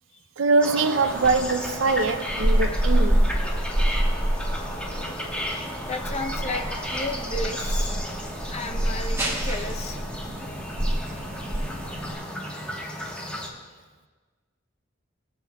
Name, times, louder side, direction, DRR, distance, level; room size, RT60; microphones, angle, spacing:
voice 1, 0.4-3.4, right 3 dB, 90° right, 0.5 m, -23 dB
sound 1, 0.6-13.5, equal, 5° left, 1.2 m, -34 dB
sound 2, 1.1-12.2, right 1 dB, 15° right, 1.5 m, -27 dB
voice 2, 5.8-6.7 6.9-7.9 8.5-10.0, left 2 dB, 35° left, 0.6 m, -33 dB
22.0 x 7.6 x 2.3 m
head